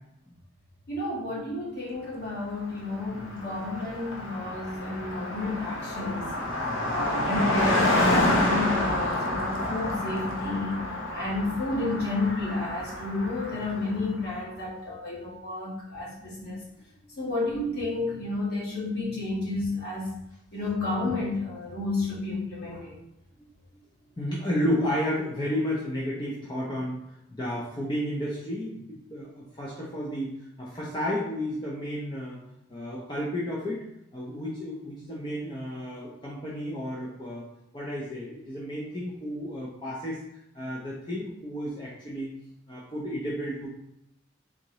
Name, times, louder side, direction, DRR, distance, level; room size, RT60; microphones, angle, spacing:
voice 1, 0.9-6.3 6.9-10.8 11.1-16.6 17.2-20.1 20.5-23.0, left 2 dB, 50° left, -5 dB, 1.2 m, -31 dB
Car passing by, 2.7-2.8 3.0-14.1, left 1 dB, 80° left, 0.7 m, -28 dB
voice 2, 6.6-7.0 13.5-13.7 24.2-27.0 27.3-32.4 32.7-33.8 34.1-37.5 37.7-40.2 40.5-42.3 42.7-43.7, equal, 20° left, -5 dB, 0.5 m, -32 dB
3.7 x 2.8 x 2.9 m, 0.82 s
head